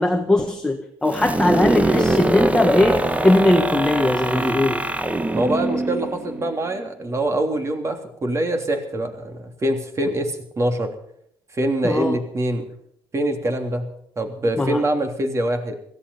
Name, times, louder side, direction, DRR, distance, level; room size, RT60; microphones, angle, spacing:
voice 1, 0.0-4.8 11.8-12.2 14.6-14.8, left 1 dB, 10° left, 3 dB, 1.6 m, -20 dB
sound 1, 1.1-6.8, right 2 dB, 15° right, 1.3 m, -23 dB
voice 2, 5.3-10.9 11.5-12.7 13.1-13.9 14.2-15.7, right 1 dB, 30° right, 5 dB, 3.2 m, -24 dB
17.5 x 14.5 x 5.6 m, 0.69 s
cardioid pair, 100°, 10 cm